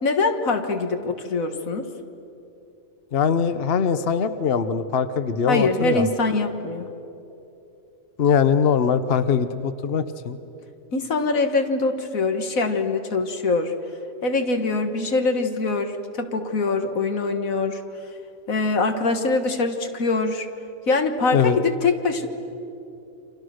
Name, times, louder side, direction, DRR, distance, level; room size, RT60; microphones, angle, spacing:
voice 1, 0.0-1.9 5.5-6.9 10.9-13.7 14.2-17.8 18.5-20.5 20.9-22.3, left 3 dB, 75° left, 6 dB, 2.0 m, -23 dB
voice 2, 3.1-6.1 8.2-10.4 21.3-21.6, left 7 dB, 50° left, 11 dB, 1.0 m, -21 dB
29.5 x 25.5 x 6.4 m, 2.9 s
omnidirectional pair, 1.4 m